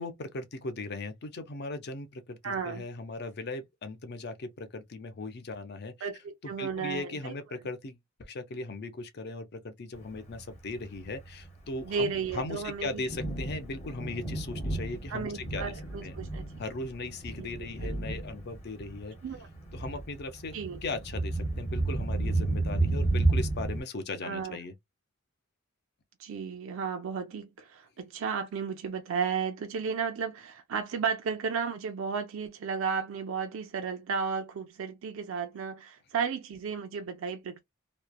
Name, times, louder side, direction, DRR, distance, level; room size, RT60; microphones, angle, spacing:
voice 1, 0.0-6.1 6.4-15.7 16.0-16.1 16.6-19.2 19.7-20.5 20.8-24.7, left 3 dB, 55° left, 0.6 m, -38 dB
voice 2, 2.4-2.8 6.0-7.3 11.8-13.1 15.1-16.4 17.4-17.5 17.8-18.0 19.2-19.5 20.5-20.8 24.2-24.6 26.2-37.6, right 6 dB, 70° right, 0.4 m, -33 dB
Thunder, 10.1-23.8, right 2 dB, 35° left, 1.0 m, -32 dB
3.0 x 2.0 x 2.2 m
head